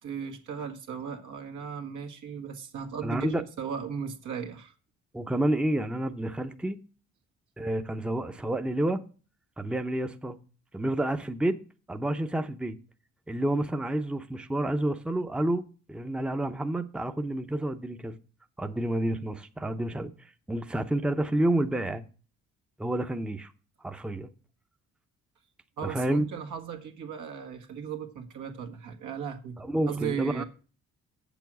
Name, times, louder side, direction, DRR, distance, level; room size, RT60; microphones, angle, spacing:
voice 1, 0.0-4.7 25.8-29.6 29.9-30.4, right 7 dB, 80° right, 1.6 m, -36 dB
voice 2, 3.0-3.4 5.1-6.8 7.6-9.0 9.6-10.4 10.7-11.6 11.9-12.8 13.3-18.2 18.6-22.0 22.8-23.5 23.8-24.3 25.8-26.2 29.6-30.4, right 1 dB, 5° right, 0.7 m, -29 dB
7.6 x 7.1 x 6.1 m
cardioid pair, 90°, 30 cm